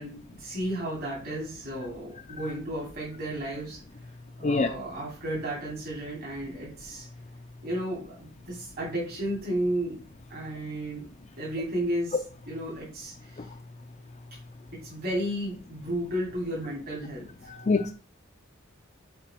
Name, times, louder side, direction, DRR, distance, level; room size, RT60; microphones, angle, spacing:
voice 1, 0.0-3.8 4.4-7.1 7.6-10.0 10.3-11.1 11.4-13.5 14.7-17.5, right 1 dB, 50° right, -5 dB, 3.0 m, -33 dB
voice 2, 17.4-17.9, left 3 dB, 35° left, 4 dB, 0.5 m, -25 dB
6.8 x 4.4 x 4.5 m, 0.37 s
head